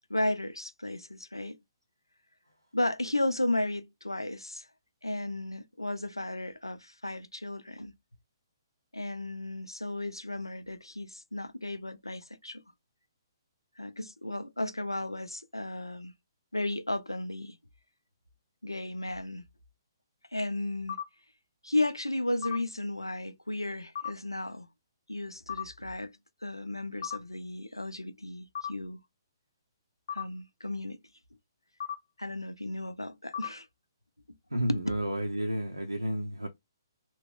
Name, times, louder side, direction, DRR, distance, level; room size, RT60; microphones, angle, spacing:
voice 1, 0.1-1.6 2.7-4.7 5.0-7.9 8.9-12.6 13.8-16.1 16.5-17.6 18.6-19.4 20.3-21.0 21.6-24.7 25.1-26.1 26.4-29.0 30.1-31.0 32.2-33.7 34.3-34.4 34.7-34.8, left 1 dB, 85° left, 0.4 m, -34 dB
sound 1, 20.9-21.0 22.4-22.6 24.0-24.1 25.5-25.6 27.0-27.2 28.5-28.7 30.1-30.2 31.8-31.9 33.3-33.5, left 9 dB, 45° left, 0.6 m, -34 dB
voice 2, 34.5-36.5, equal, 80° right, 0.5 m, -31 dB
2.8 x 2.0 x 3.4 m
figure-of-eight pair, 130°, 2 cm